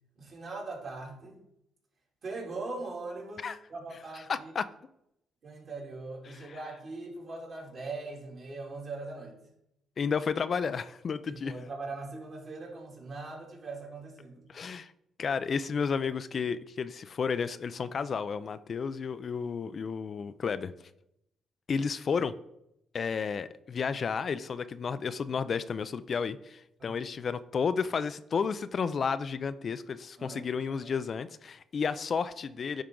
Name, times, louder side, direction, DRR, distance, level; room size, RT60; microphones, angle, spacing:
voice 1, 0.2-1.4 2.2-4.5 5.4-9.3 11.3-14.4 26.8-27.1 30.2-30.9, right 3 dB, 55° right, -2 dB, 2.7 m, -41 dB
voice 2, 4.3-4.7 6.3-6.6 10.0-11.5 14.5-14.9 15.2-20.7 21.7-22.3 22.9-32.8, left 6 dB, 50° left, 13 dB, 0.4 m, -32 dB
10.0 x 3.7 x 3.7 m, 0.80 s
supercardioid pair, 60°, 0 cm